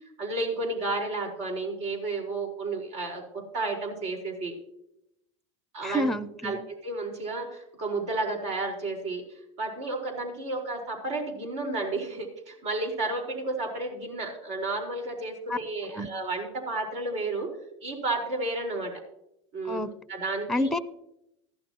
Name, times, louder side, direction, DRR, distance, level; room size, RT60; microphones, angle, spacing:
voice 1, 0.2-4.6 5.7-6.1 6.4-6.6 6.8-9.2 9.6-17.5 17.8-18.9 19.5-19.8 20.1-20.7, right 2 dB, 70° right, 0 dB, 4.8 m, -32 dB
voice 2, 5.8-6.6 15.5-15.6 15.9-16.1 19.7-19.9 20.5-20.8, equal, ahead, 14 dB, 0.6 m, -28 dB
14.5 x 12.0 x 3.0 m, 0.79 s
hypercardioid pair, 100°, 16 cm